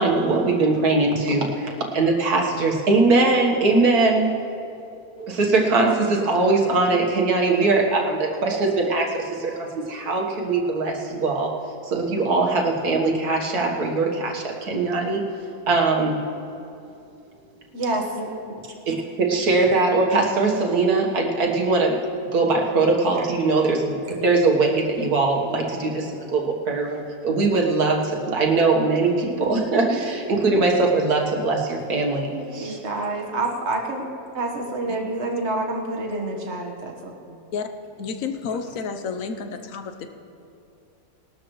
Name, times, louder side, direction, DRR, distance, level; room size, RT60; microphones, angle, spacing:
voice 1, 0.0-4.3 5.2-11.5 11.8-15.2 15.7-16.2 18.9-22.0 22.3-32.8, right 3 dB, 80° right, 0 dB, 1.9 m, -21 dB
voice 2, 17.7-18.3 23.2-23.3 32.3-34.1 34.3-37.4, right 2 dB, 45° right, 1 dB, 1.7 m, -28 dB
voice 3, 38.0-40.1, left 5 dB, 65° left, 7 dB, 1.2 m, -30 dB
20.5 x 12.5 x 3.1 m, 2.6 s
omnidirectional pair, 1.6 m